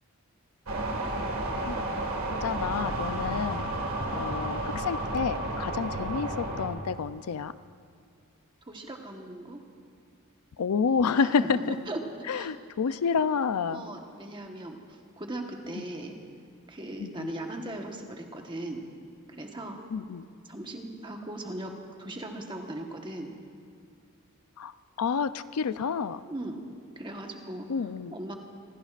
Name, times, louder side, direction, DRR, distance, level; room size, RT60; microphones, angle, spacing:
sound 1, 0.7-6.7, right 1 dB, 70° right, 1.8 m, -32 dB
voice 1, 2.4-3.6 4.1-7.6 10.6-11.8 12.3-13.8 15.8-15.9 17.0-17.3 19.9-20.3 24.6-24.7 25.0-26.2 27.7-28.1, left 5 dB, 90° left, 14 dB, 0.5 m, -29 dB
voice 2, 8.7-9.6 11.2-11.5 11.9-12.0 12.3-12.5 13.7-16.1 16.7-18.8 19.3-19.8 20.5-21.7 22.0-23.3 26.3-26.6 27.0-27.7 28.1-28.3, right 1 dB, 20° right, 2 dB, 1.2 m, -38 dB
26.5 x 16.0 x 2.5 m, 2.2 s
head